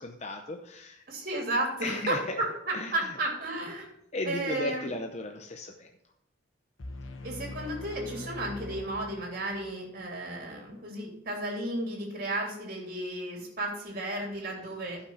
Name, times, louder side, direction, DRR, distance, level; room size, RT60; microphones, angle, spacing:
voice 1, 0.0-1.0 1.8-2.4 2.7-3.2 4.1-5.9, left 2 dB, 35° left, 4 dB, 0.7 m, -36 dB
voice 2, 1.1-3.9 4.2-4.9 7.2-15.0, right 1 dB, 45° right, 0 dB, 3.0 m, -33 dB
sound 1, 6.8-9.7, left 2 dB, 85° left, 1.1 m, -42 dB
11.5 x 5.9 x 5.7 m, 0.80 s
head